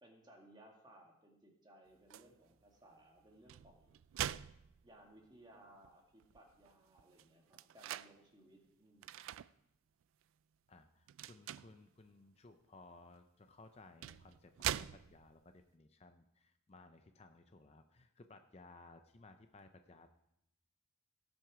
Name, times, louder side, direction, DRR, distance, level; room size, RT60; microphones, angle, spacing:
voice 1, 0.0-4.0 4.8-9.2, right 1 dB, 20° right, 1 dB, 1.8 m, -62 dB
sound 1, 2.1-2.3 3.3-5.3 5.8-5.9 6.2-8.1 9.0-9.5 10.0-10.2 11.1-11.8 13.1-13.2 13.8-15.4, right 11 dB, 80° right, 0.3 m, -43 dB
voice 2, 10.7-20.1, left 3 dB, 30° left, 7 dB, 0.5 m, -60 dB
17.5 x 6.3 x 4.9 m, 0.82 s
head